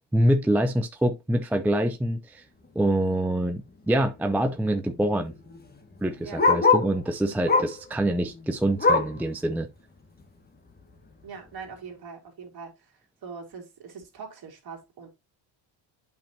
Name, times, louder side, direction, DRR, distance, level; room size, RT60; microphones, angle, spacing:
voice 1, 0.1-2.4 2.7-5.3 6.0-9.7, right 1 dB, 5° right, 0.5 m, -25 dB
Bark, 3.3-3.5 3.8-3.9 4.1-7.0 7.4-7.9 8.2-9.2 9.7-9.8 10.2-10.3 11.0-11.1, left 4 dB, 20° left, 1.6 m, -24 dB
voice 2, 11.2-12.7 13.2-15.1, right 5 dB, 50° right, 2.8 m, -42 dB
8.8 x 5.4 x 2.8 m
cardioid pair, 115°, 49 cm